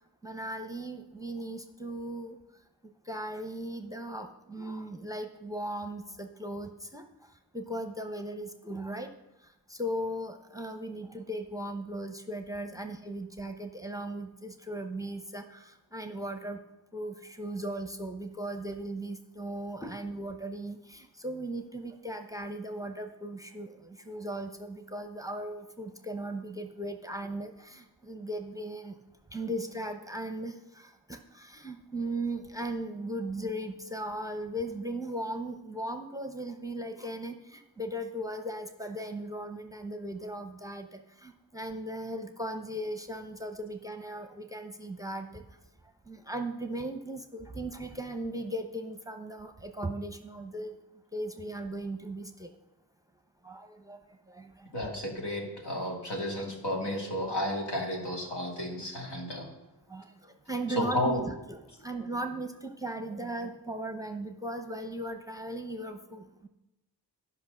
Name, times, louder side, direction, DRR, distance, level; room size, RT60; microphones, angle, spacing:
voice 1, 0.2-2.4 3.1-7.0 7.5-9.1 9.7-16.6 16.9-29.0 29.3-45.4 46.1-50.8 51.1-52.5 53.4-54.0 54.3-54.7 56.2-56.3 59.9-66.5, right 1 dB, 10° right, 6 dB, 0.8 m, -37 dB
voice 2, 54.7-59.5 60.8-61.2, left 1 dB, 75° left, 0 dB, 2.5 m, -32 dB
11.0 x 5.6 x 6.4 m, 0.94 s
cardioid pair, 70°, 42 cm